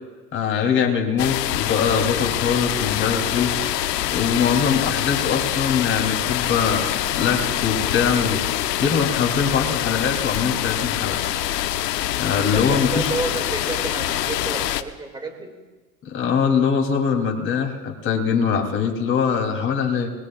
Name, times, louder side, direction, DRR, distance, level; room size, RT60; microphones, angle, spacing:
voice 1, 0.3-3.5 4.1-8.4 8.8-11.2 12.2-13.1 16.0-20.1, left 6 dB, 25° left, 2 dB, 3.0 m, -22 dB
sound 1, 1.2-14.8, left 12 dB, 80° left, 0.9 m, -25 dB
voice 2, 12.2-15.6, right 3 dB, 10° right, 4 dB, 2.2 m, -31 dB
28.0 x 20.5 x 2.4 m, 1.3 s
hypercardioid pair, 115°, 48 cm